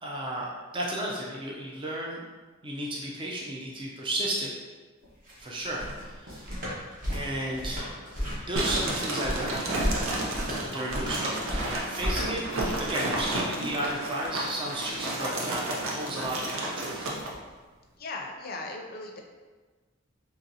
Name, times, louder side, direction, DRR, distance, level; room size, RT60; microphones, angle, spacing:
voice 1, 0.0-2.2 2.6-4.5 5.4-6.4 7.1-7.8 8.5-9.7 10.5-12.4 12.8-17.1, right 1 dB, 25° right, -3 dB, 0.5 m, -33 dB
sound 1, 5.0-13.9, equal, 45° right, 1.1 m, -34 dB
sound 2, 8.6-17.3, right 2 dB, 90° right, 0.7 m, -32 dB
voice 2, 18.0-19.2, left 2 dB, 50° left, 1 dB, 0.5 m, -38 dB
3.9 x 2.9 x 2.7 m, 1.3 s
head